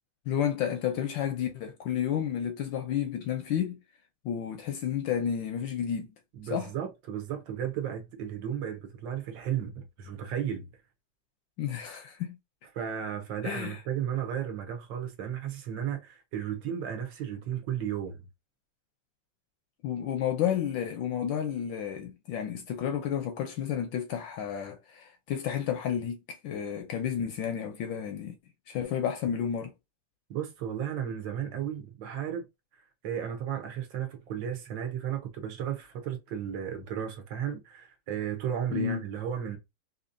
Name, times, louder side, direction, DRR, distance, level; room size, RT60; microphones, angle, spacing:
voice 1, 0.3-3.8 4.2-6.1 6.5-6.7 11.6-12.4 13.4-13.8 19.8-28.4 28.7-29.7 38.7-39.0, left 9 dB, 75° left, 1.2 m, -31 dB
voice 2, 6.3-10.7 12.7-18.2 30.3-32.4 33.0-39.6, right 9 dB, 65° right, 1.4 m, -34 dB
4.2 x 2.8 x 2.5 m
omnidirectional pair, 2.4 m